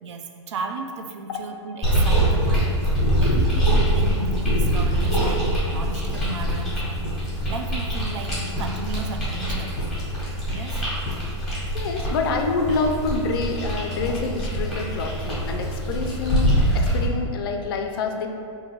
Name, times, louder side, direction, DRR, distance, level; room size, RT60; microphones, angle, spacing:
voice 1, 0.0-9.8 10.5-10.8, right 4 dB, 70° right, 4 dB, 0.4 m, -35 dB
sound 1, 1.8-17.1, equal, ahead, 1.1 m, -24 dB
voice 2, 11.7-18.3, left 3 dB, 50° left, 4 dB, 0.4 m, -27 dB
3.7 x 2.7 x 3.0 m, 2.4 s
hypercardioid pair, 155°, 16 cm